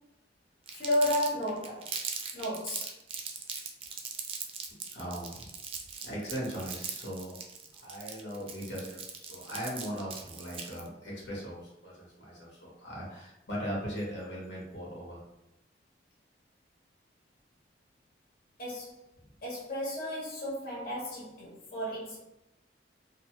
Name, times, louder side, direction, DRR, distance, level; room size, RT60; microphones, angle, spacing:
voice 1, 0.7-1.9 2.3-2.9 18.6-19.0 19.4-22.2, left 1 dB, 55° left, -6 dB, 0.8 m, -33 dB
Crumpling crinkling, 0.7-10.9, right 6 dB, 30° right, 0.3 m, -40 dB
voice 2, 4.9-5.5 6.0-7.4 7.7-15.2 21.7-22.0, equal, 90° left, -4 dB, 1.1 m, -39 dB
2.6 x 2.4 x 2.9 m, 0.86 s
head